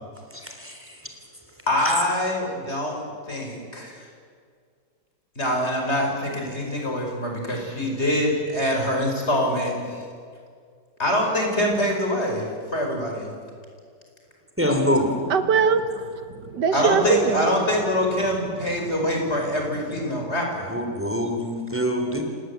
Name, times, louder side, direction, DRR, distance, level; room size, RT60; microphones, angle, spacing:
voice 1, 0.3-1.1 1.8-1.9 14.6-15.1 20.7-22.2, equal, 5° right, 3.6 m, -25 dB
voice 2, 1.7-3.0 3.3-4.0 5.4-10.0 11.0-12.4 12.7-13.4 16.7-20.7, left 1 dB, 40° left, 5.4 m, -24 dB
voice 3, 15.3-17.5 19.3-19.4 20.1-20.3, right 6 dB, 80° right, 1.7 m, -23 dB
29.0 x 18.5 x 8.3 m
omnidirectional pair, 1.8 m